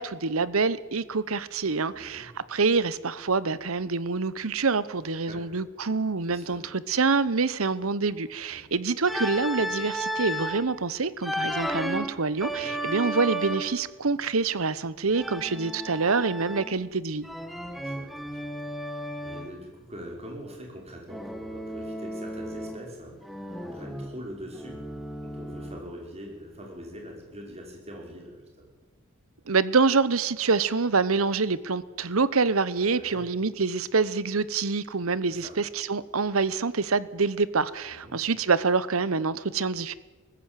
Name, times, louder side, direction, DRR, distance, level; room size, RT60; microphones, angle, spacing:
voice 1, 0.0-17.3 29.5-39.9, right 4 dB, 75° right, 17 dB, 1.0 m, -26 dB
voice 2, 1.9-2.3 5.3-5.5 6.3-6.6 8.5-8.7 12.4-12.8 17.5-23.4 23.7-24.9 25.2-28.7 32.9-33.2 35.3-35.6 37.9-38.2, equal, 30° right, 1 dB, 5.6 m, -43 dB
Organ, 9.0-10.7 11.2-13.9 15.1-16.9 17.2-19.5 21.1-22.9 23.2-25.9, right 1 dB, ahead, 1.4 m, -34 dB
19.5 x 14.5 x 9.1 m, 1.3 s
head